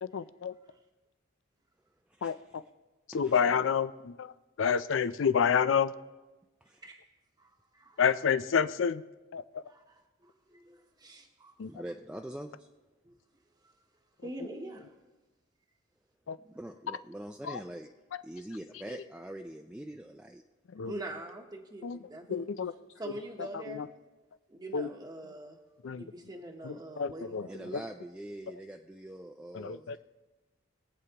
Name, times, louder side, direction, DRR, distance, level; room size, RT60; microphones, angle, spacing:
voice 1, 0.0-0.5 2.2-2.6 3.1-5.9 8.0-9.0 9.3-9.6 11.6-11.7 16.3-16.4 17.4-17.6 20.7-20.9 21.8-22.0 22.3-22.7 23.4-23.9 24.7-24.9 25.8-26.0 26.6-27.8 29.5-30.0, left 7 dB, 80° left, 14 dB, 0.4 m, -29 dB
voice 2, 3.1-3.7 6.6-6.9 11.7-12.7 16.4-17.9 18.2-20.4 27.5-30.0, right 1 dB, 5° right, 2 dB, 0.4 m, -44 dB
voice 3, 7.4-8.0 9.7-11.5 13.0-13.1 14.2-14.9 20.8-22.5 23.0-23.9 24.5-25.6 25.9-27.7, right 1 dB, 20° right, -1 dB, 0.9 m, -44 dB
22.0 x 8.1 x 2.9 m, 1.1 s
head